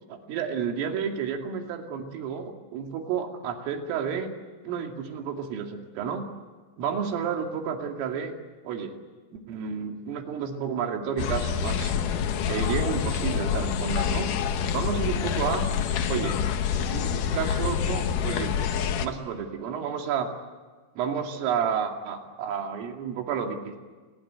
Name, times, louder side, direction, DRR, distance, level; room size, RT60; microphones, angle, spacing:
voice 1, 0.1-4.3 4.6-6.3 6.8-8.4 8.6-9.0 9.3-11.9 12.5-14.3 14.7-15.7 16.1-16.4 16.9-18.7 19.0-20.3 21.0-23.8, right 7 dB, 80° right, 3 dB, 5.0 m, -31 dB
sound 1, 11.2-19.1, left 8 dB, 75° left, 1.9 m, -27 dB
29.0 x 20.5 x 9.5 m, 1.4 s
omnidirectional pair, 5.8 m